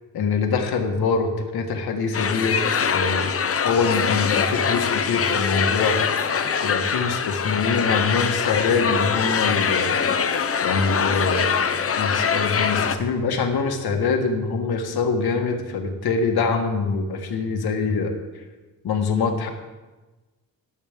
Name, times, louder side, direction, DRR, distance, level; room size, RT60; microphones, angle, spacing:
voice 1, 0.1-3.3 3.6-6.0 6.6-10.0 10.6-11.6 12.0-18.1 18.8-19.5, left 4 dB, 85° left, 4 dB, 1.6 m, -24 dB
sound 1, 2.1-13.0, left 6 dB, 40° left, 0.7 m, -23 dB
18.5 x 8.2 x 3.6 m, 1.2 s
cardioid pair, 105°, 37 cm